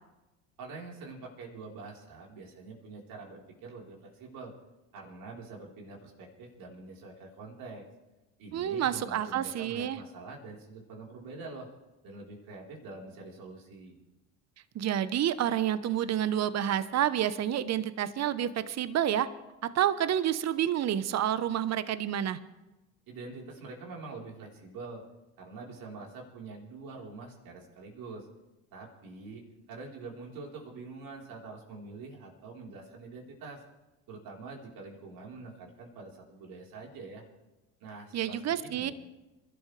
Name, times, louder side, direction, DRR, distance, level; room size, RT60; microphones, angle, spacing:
voice 1, 0.6-4.5 4.9-7.8 8.4-11.7 12.0-14.0 23.1-25.0 25.4-28.3 28.7-33.6 34.1-37.2 37.8-38.9, right 3 dB, 55° right, -1 dB, 4.3 m, -45 dB
voice 2, 8.5-10.0 14.7-19.3 19.6-22.4 38.1-38.9, right 10 dB, 40° right, 14 dB, 1.0 m, -29 dB
28.0 x 12.5 x 3.4 m, 1.1 s
hypercardioid pair, 70°, 40 cm